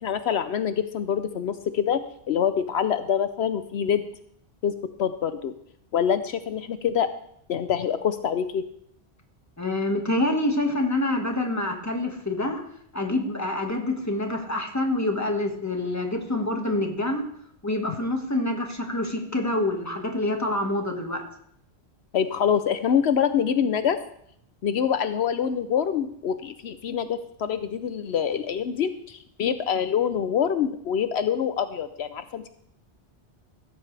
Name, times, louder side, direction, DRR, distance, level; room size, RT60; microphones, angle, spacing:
voice 1, 0.0-4.0 4.6-4.7 5.0-5.5 5.9-7.1 7.5-8.6 22.1-24.0 24.6-32.5, left 8 dB, 75° left, 11 dB, 0.9 m, -25 dB
voice 2, 9.6-12.6 12.9-17.3 17.6-21.2, left 1 dB, 15° left, 3 dB, 1.7 m, -26 dB
16.5 x 13.5 x 3.3 m, 0.70 s
omnidirectional pair, 1.1 m